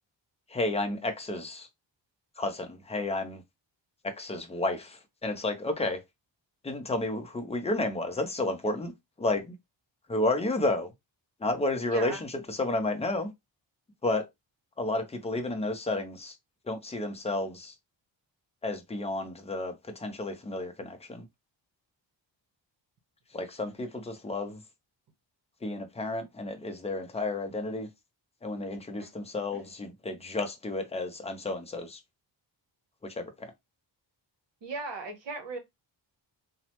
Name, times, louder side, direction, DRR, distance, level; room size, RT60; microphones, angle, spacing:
voice 1, 0.5-1.7 2.4-3.4 4.0-6.0 6.6-8.9 9.2-9.5 10.1-10.9 11.4-13.3 14.0-14.3 14.8-16.3 16.7-17.7 18.6-21.2 23.3-24.6 25.6-27.9 28.4-32.0 33.0-33.5, left 2 dB, 15° left, 0.5 m, -31 dB
voice 2, 11.9-12.2 29.0-29.1 34.6-35.6, right 3 dB, 70° right, 0.9 m, -37 dB
3.0 x 2.0 x 2.8 m
wide cardioid pair, 135°, 46 cm